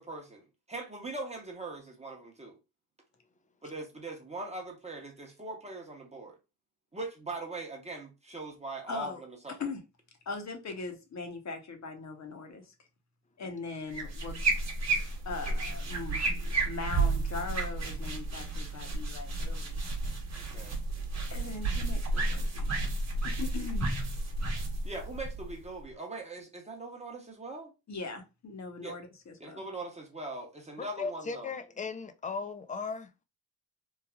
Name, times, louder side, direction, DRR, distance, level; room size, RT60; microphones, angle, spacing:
voice 1, 0.0-2.6 3.6-6.4 6.9-9.6 20.3-20.8 24.8-27.7 28.8-29.0 29.4-31.5, right 2 dB, 15° right, 0.8 m, -41 dB
voice 2, 8.9-9.2 9.6-9.8 10.3-12.7 13.4-14.4 15.2-16.2 16.6-19.8 21.3-22.8 23.2-24.0 27.9-29.6, left 4 dB, 45° left, 0.8 m, -40 dB
sound 1, 13.9-25.8, right 2 dB, 45° right, 1.0 m, -32 dB
voice 3, 30.8-33.1, left 4 dB, 20° left, 0.4 m, -37 dB
3.2 x 2.3 x 2.2 m
cardioid pair, 90°, 38 cm